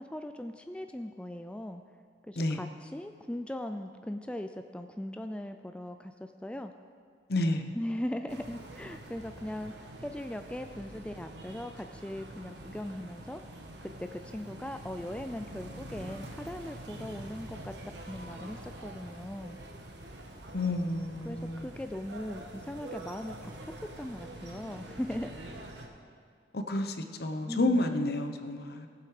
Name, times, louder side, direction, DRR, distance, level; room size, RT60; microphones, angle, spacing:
voice 1, 0.0-1.8 2.2-6.7 7.7-13.4 13.8-19.6 21.2-25.6 27.5-27.9, left 1 dB, 5° left, 7 dB, 0.3 m, -39 dB
voice 2, 7.3-7.7 20.5-21.7 26.5-28.9, left 2 dB, 60° left, 7 dB, 0.9 m, -30 dB
sound 1, 8.3-25.9, right 1 dB, 80° right, 1.5 m, -46 dB
18.5 x 7.8 x 4.9 m, 2.2 s
head